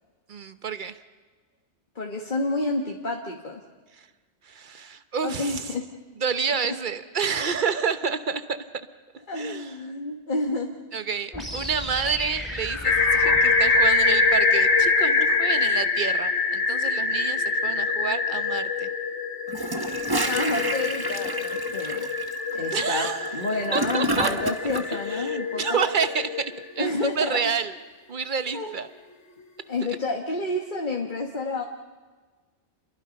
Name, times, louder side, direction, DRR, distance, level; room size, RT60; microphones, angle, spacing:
voice 1, 0.3-1.0 4.5-5.7 6.2-8.6 9.4-9.7 10.9-18.9 22.5-23.4 23.7-24.3 24.9-27.7 28.1-28.9, right 6 dB, 45° right, 11 dB, 1.1 m, -29 dB
voice 2, 2.0-3.6 5.2-5.9 6.6-6.7 9.3-10.7 11.3-11.4 20.2-22.1 22.5-25.8 26.8-27.5 28.5-28.7 29.7-31.6, left 2 dB, 45° left, 1 dB, 1.7 m, -29 dB
sound 1, 11.3-15.3, left 1 dB, ahead, 5.8 m, -36 dB
sound 2, 12.8-26.7, left 4 dB, 75° left, 1.5 m, -24 dB
Gurgling / Toilet flush, 19.5-24.8, right 2 dB, 20° right, 1.2 m, -30 dB
29.5 x 22.5 x 5.3 m, 1.4 s
omnidirectional pair, 1.2 m